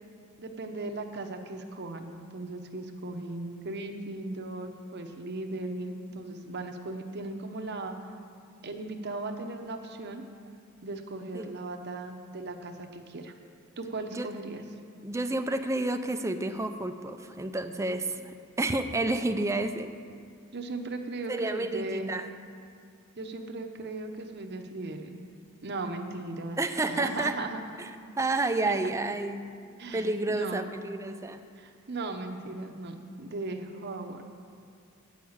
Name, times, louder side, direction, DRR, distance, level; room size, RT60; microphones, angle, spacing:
voice 1, 0.4-7.9 8.6-10.2 10.8-13.3 13.8-14.6 19.9-20.1 20.5-22.1 23.2-25.2 25.6-27.6 28.6-28.8 29.8-30.8 31.6-34.2, right 2 dB, 55° right, 4 dB, 0.9 m, -37 dB
voice 2, 15.0-19.9 21.3-22.3 26.6-27.4 28.2-29.4 29.9-31.4, right 2 dB, 15° right, 8 dB, 0.5 m, -30 dB
8.9 x 6.4 x 8.6 m, 2.3 s
head